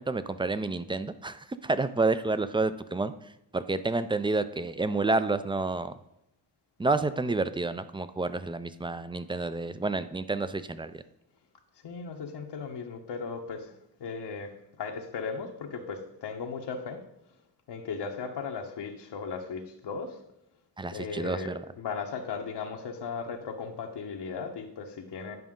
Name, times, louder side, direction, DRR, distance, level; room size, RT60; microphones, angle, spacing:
voice 1, 0.0-3.1 3.5-5.9 6.8-11.0 20.8-21.6, right 3 dB, 15° right, 12 dB, 0.3 m, -29 dB
voice 2, 11.8-13.7 14.0-14.5 14.8-17.0 17.7-20.2 20.9-25.4, left 5 dB, 80° left, 2 dB, 1.0 m, -37 dB
9.4 x 5.0 x 3.7 m, 0.83 s
cardioid pair, 90°, 41 cm